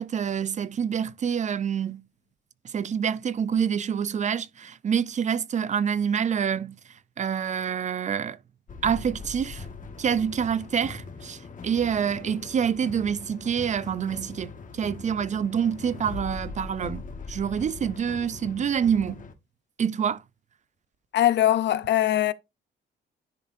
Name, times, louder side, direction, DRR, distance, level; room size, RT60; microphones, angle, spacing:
voice 1, 0.0-2.0 2.6-6.8 7.2-8.4 8.8-9.7 10.0-17.0 17.3-19.2 19.8-20.2, right 7 dB, 40° right, 0.4 m, -27 dB
sound 1, 8.7-19.3, left 4 dB, 40° left, 1.2 m, -41 dB
voice 2, 21.1-22.3, left 12 dB, 60° left, 0.6 m, -21 dB
10.5 x 3.9 x 2.5 m
cardioid pair, 90°, 20 cm